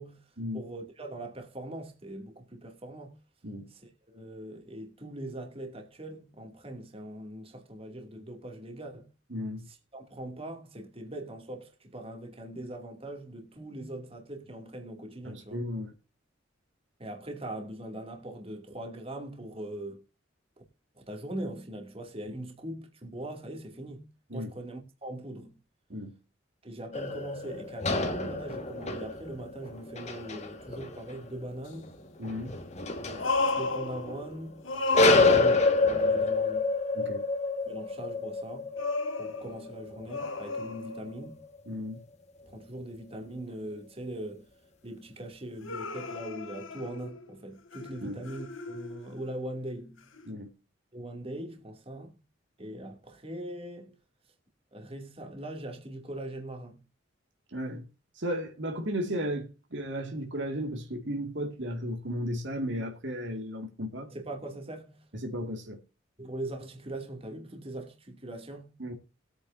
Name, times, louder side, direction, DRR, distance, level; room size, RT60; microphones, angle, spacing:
voice 1, 0.5-3.2 3.7-9.1 9.7-15.6 17.0-20.0 20.9-25.6 26.6-31.9 33.0-34.7 35.0-36.7 37.7-38.8 39.2-41.5 42.5-44.5 44.8-50.1 50.9-52.1 52.6-54.0 54.7-56.8 64.1-65.0 66.2-68.7, right 1 dB, 30° right, 2.6 m, -41 dB
voice 2, 9.3-9.7 15.2-15.9 24.3-24.5 25.9-26.1 32.2-32.5 36.9-37.2 41.7-42.0 48.0-48.2 50.3-50.5 57.5-57.9 58.2-64.1 65.1-65.8 68.8-68.9, equal, 65° right, 2.2 m, -34 dB
sound 1, 26.9-34.5 34.9-41.4, left 3 dB, 35° left, 1.8 m, -28 dB
sound 2, 31.7-31.8 33.1-34.4 34.6-35.8 38.8-41.3 45.6-47.3 47.7-49.1 50.2-50.3, left 3 dB, 90° left, 1.8 m, -33 dB
20.5 x 8.9 x 2.7 m
head